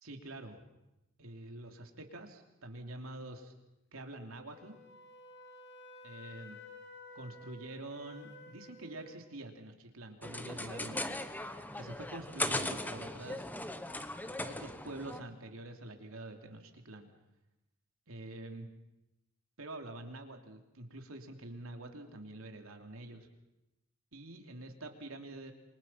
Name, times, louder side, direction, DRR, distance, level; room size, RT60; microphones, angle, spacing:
voice 1, 0.0-0.6 1.2-3.5 3.9-4.8 6.0-6.6 7.1-11.2 11.7-13.5 14.5-17.1 18.1-18.7 19.6-23.3 24.1-25.5, right 2 dB, 75° right, 4 dB, 3.0 m, -46 dB
Wind instrument woodwind instrument, 4.5-9.2, left 2 dB, 55° left, 3.2 m, -53 dB
sound 1, 10.2-15.2, left 2 dB, 10° left, 1.1 m, -38 dB
28.5 x 24.0 x 5.7 m, 0.93 s
head